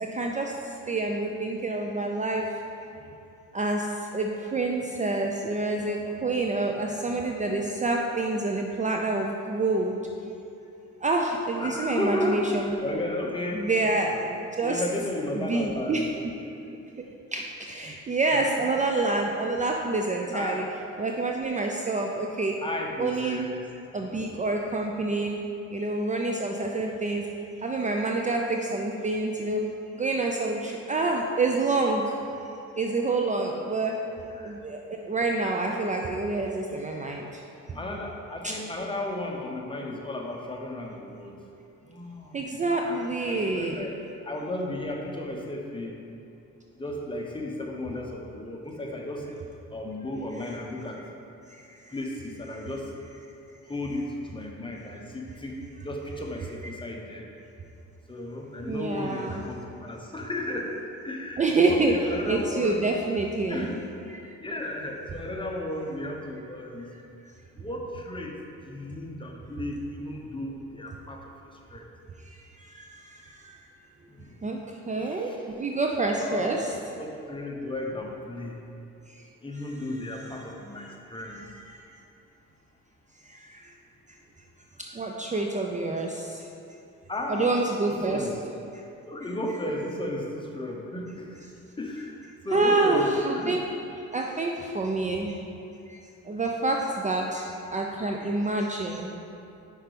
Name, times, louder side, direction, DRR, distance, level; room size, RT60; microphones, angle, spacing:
voice 1, 0.0-2.5 3.5-10.0 11.0-12.7 13.5-14.8 15.3-16.1 17.3-20.6 21.0-22.6 23.0-23.4 23.9-25.4 25.7-27.3 27.6-29.6 29.9-32.2 32.8-34.0 34.4-37.4 37.7-37.8 38.4-38.5 42.3-43.9 51.5-51.9 58.7-59.4 61.4-61.9 62.3-63.7 64.1-64.3 72.2-73.6 74.4-74.6 74.9-75.3 75.6-76.7 79.1-79.2 83.3-83.7 84.8-86.5 87.3-88.2 92.5-93.6 94.1-95.4 95.9-96.0 96.3-99.1, right 2 dB, 25° right, 1 dB, 0.5 m, -27 dB
voice 2, 11.6-13.7 14.6-16.0 18.5-18.7 20.3-20.7 22.6-23.6 24.1-24.2 34.1-34.5 37.7-41.3 41.8-43.9 44.2-46.0 46.7-49.3 49.7-51.0 51.9-52.9 53.7-57.3 58.1-62.8 63.5-63.8 64.4-66.9 67.5-68.4 68.6-71.9 74.1-74.5 75.0-75.4 76.1-76.6 76.9-78.6 79.4-81.5 87.1-87.6 87.9-88.4 89.0-91.4 91.8-93.6, left 1 dB, 15° left, 0 dB, 1.0 m, -34 dB
5.7 x 4.6 x 5.1 m, 2.7 s
cardioid pair, 90°, 30 cm